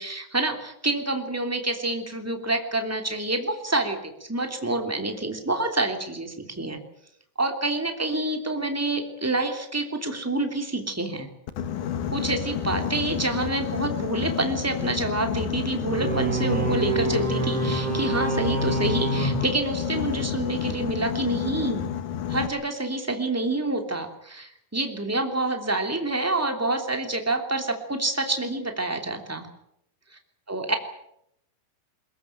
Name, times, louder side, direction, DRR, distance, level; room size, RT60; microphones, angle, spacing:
voice 1, 0.0-6.8 7.4-11.3 12.1-21.9 22.3-29.5 30.5-30.7, right 2 dB, 5° right, 4 dB, 2.1 m, -27 dB
Boat Water vehicle, 11.5-22.5, left 9 dB, 60° left, 2.4 m, -30 dB
sound 1, 15.9-20.4, right 3 dB, 35° right, 6.9 m, -28 dB
22.0 x 21.0 x 9.0 m, 0.76 s
omnidirectional pair, 5.0 m